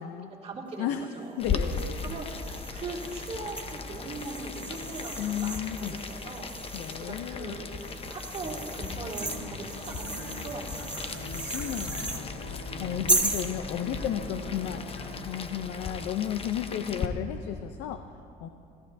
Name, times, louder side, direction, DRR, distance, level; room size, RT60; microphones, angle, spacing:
voice 1, 0.4-1.4 2.0-2.3 2.7-5.1 5.4-7.7 8.1-11.0 12.7-12.9, right 3 dB, 35° right, -3 dB, 2.6 m, -40 dB
voice 2, 1.4-2.1 5.2-6.0 6.7-7.6 11.0-18.5, left 10 dB, 90° left, 8 dB, 0.6 m, -34 dB
Boiling, 1.4-17.1, left 5 dB, 35° left, 0.9 m, -37 dB
sound 1, 1.6-7.1 7.8-12.2 13.1-13.5, right 2 dB, 5° right, 1.7 m, -35 dB
sound 2, 8.4-15.4, left 1 dB, 60° left, 2.3 m, -43 dB
27.5 x 15.0 x 2.7 m, 2.6 s
cardioid pair, 110°, 17 cm